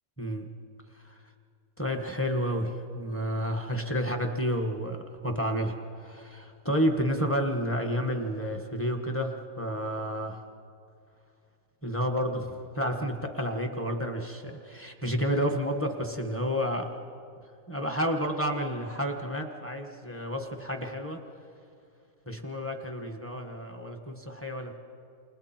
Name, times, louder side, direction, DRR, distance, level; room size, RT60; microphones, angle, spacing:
voice 1, 0.2-0.5 1.0-1.2 1.8-5.0 5.2-5.7 6.0-10.4 11.8-16.9 17.7-21.2 22.3-24.8, equal, 10° left, 3 dB, 1.4 m, -30 dB
29.5 x 28.0 x 4.5 m, 2.4 s
omnidirectional pair, 1.7 m